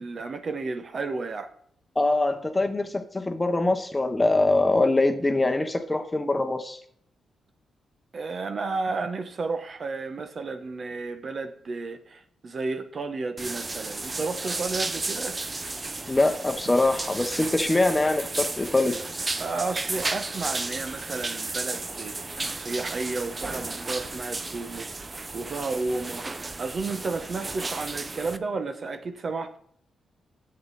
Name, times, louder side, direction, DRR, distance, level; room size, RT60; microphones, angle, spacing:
voice 1, 0.0-1.5 8.1-15.4 19.4-29.6, right 3 dB, 45° right, 8 dB, 1.0 m, -32 dB
voice 2, 2.0-6.8 16.1-19.0, left 2 dB, 15° left, 8 dB, 1.0 m, -23 dB
sound 1, 13.4-28.4, right 3 dB, 25° right, 0.6 m, -33 dB
10.5 x 7.8 x 4.2 m, 0.64 s
cardioid pair, 100°, 0 cm